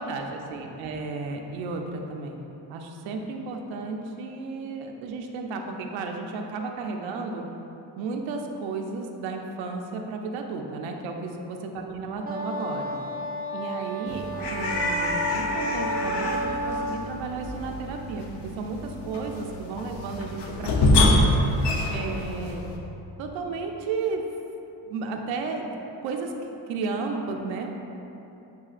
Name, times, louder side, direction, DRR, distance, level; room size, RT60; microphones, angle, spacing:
voice 1, 0.0-2.4 2.7-7.5 8.0-13.0 13.5-18.2 18.6-21.3 21.9-22.6 23.2-24.2 24.9-25.7 26.0-26.3 26.7-27.7, right 4 dB, 80° right, 3 dB, 0.6 m, -33 dB
Wind instrument woodwind instrument, 12.2-17.1, equal, 20° right, 0.6 m, -31 dB
sound 1, 14.1-22.8, left 1 dB, 65° left, 0.7 m, -26 dB
7.5 x 2.7 x 2.4 m, 3.0 s
supercardioid pair, 60°, 45 cm